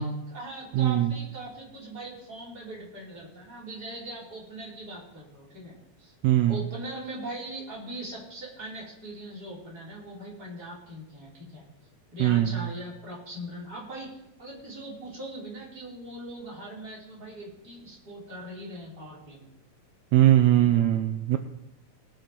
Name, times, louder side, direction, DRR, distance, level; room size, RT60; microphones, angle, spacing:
voice 1, 0.0-6.1 6.5-11.6 12.1-19.5, right 1 dB, 30° right, -6 dB, 4.7 m, -40 dB
voice 2, 0.7-1.1 6.2-6.6 12.2-12.5 20.1-21.4, right 13 dB, 75° right, 7 dB, 1.8 m, -20 dB
20.5 x 7.8 x 4.6 m, 0.87 s
omnidirectional pair, 3.7 m